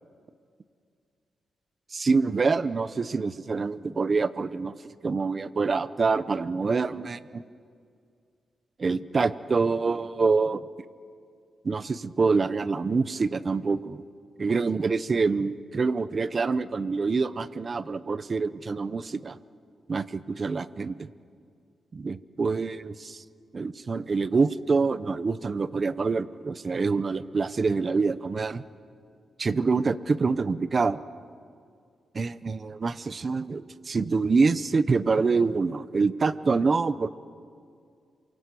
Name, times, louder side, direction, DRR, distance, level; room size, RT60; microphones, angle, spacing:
voice 1, 1.9-7.4 8.8-10.6 11.6-14.0 14.4-19.4 19.9-21.1 21.9-23.2 23.5-28.6 29.4-31.0 32.1-37.1, right 4 dB, 30° right, 14 dB, 0.8 m, -26 dB
27.5 x 24.5 x 8.4 m, 2.2 s
wide cardioid pair, 150°, 0 cm